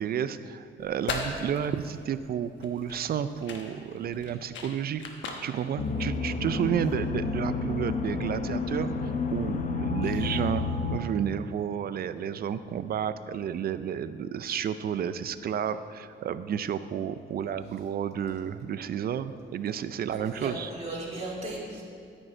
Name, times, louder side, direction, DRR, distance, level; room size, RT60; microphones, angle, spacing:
voice 1, 0.0-5.0 5.4-10.6 10.9-20.7, right 8 dB, 50° right, 13 dB, 0.4 m, -31 dB
sound 1, 0.8-6.8, left 4 dB, 70° left, 1.1 m, -39 dB
sound 2, 5.8-11.0, left 4 dB, 40° left, 0.7 m, -30 dB
voice 2, 10.0-10.3 20.1-21.8, right 2 dB, 30° right, -6 dB, 2.3 m, -37 dB
13.5 x 5.3 x 4.4 m, 2.5 s
cardioid pair, 90°, 20 cm